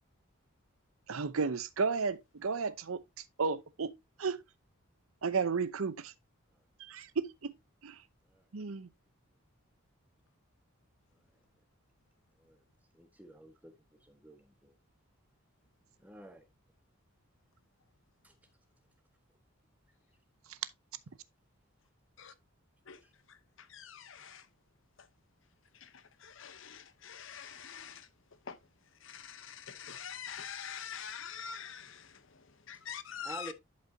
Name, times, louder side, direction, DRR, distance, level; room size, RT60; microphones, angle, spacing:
voice 1, 1.1-3.0 3.4-3.9 4.2-4.4 5.2-6.1 6.8-7.5 7.8-8.0 8.5-8.9, right 5 dB, 75° right, 0.7 m, -33 dB
voice 2, 12.9-14.7 16.0-16.5 18.2-18.4 23.0-23.1 33.2-33.5, right 1 dB, 5° right, 1.3 m, -50 dB
voice 3, 23.7-24.4 25.8-25.9 26.2-28.1 28.5-28.6 29.0-32.1 32.7-33.5, left 7 dB, 60° left, 0.8 m, -44 dB
11.0 x 5.3 x 2.7 m
head